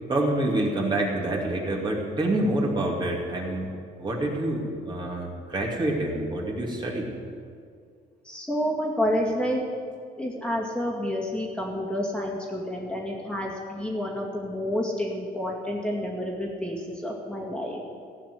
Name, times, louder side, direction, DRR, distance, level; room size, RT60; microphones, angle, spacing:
voice 1, 0.1-3.7 4.0-7.1, right 1 dB, 25° right, -1 dB, 2.4 m, -27 dB
voice 2, 8.2-9.6 10.2-17.8, equal, 5° left, -2 dB, 2.2 m, -29 dB
15.5 x 5.8 x 9.5 m, 2.2 s
cardioid pair, 110°, 17 cm